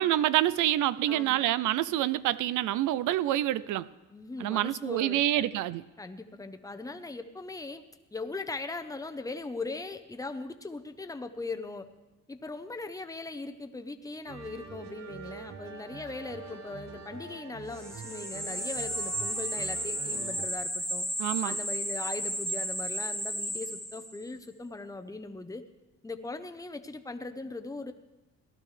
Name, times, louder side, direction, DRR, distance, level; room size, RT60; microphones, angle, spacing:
voice 1, 0.0-3.9 4.4-5.8 21.2-21.6, right 14 dB, 80° right, 18 dB, 0.5 m, -27 dB
voice 2, 1.1-1.4 4.1-5.5 6.0-7.8 8.1-11.9 12.3-21.1 21.4-25.6 26.0-27.9, left 3 dB, 10° left, 8 dB, 0.8 m, -39 dB
sound 1, 14.3-20.5, right 5 dB, 60° right, 1.2 m, -44 dB
sound 2, 17.7-24.3, equal, 10° right, 1.8 m, -33 dB
18.0 x 12.0 x 3.3 m, 1.0 s
cardioid pair, 90°, 30 cm